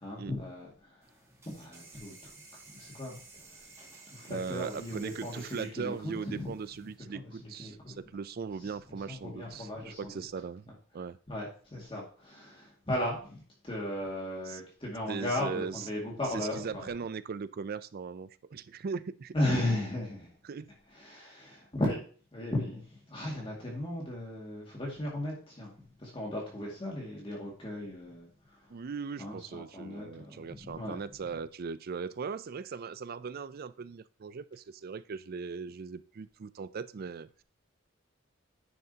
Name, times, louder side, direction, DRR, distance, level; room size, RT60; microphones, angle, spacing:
voice 1, 0.0-1.0 1.6-2.3 2.7-3.2 3.5-3.7 4.1-6.5 7.1-8.0 9.1-10.1 11.3-16.9 19.3-20.3 20.9-22.0 22.3-28.3 28.6-28.7 29.2-31.0, left 1 dB, 25° left, -2 dB, 2.1 m, -36 dB
sound 1, 1.0-6.9, right 3 dB, 15° right, 2.2 m, -54 dB
voice 2, 4.3-11.2 14.5-14.6 15.1-15.9 16.3-19.3 20.4-20.7 28.7-37.4, right 5 dB, 50° right, 16 dB, 0.4 m, -39 dB
10.0 x 6.7 x 2.8 m, 0.42 s
head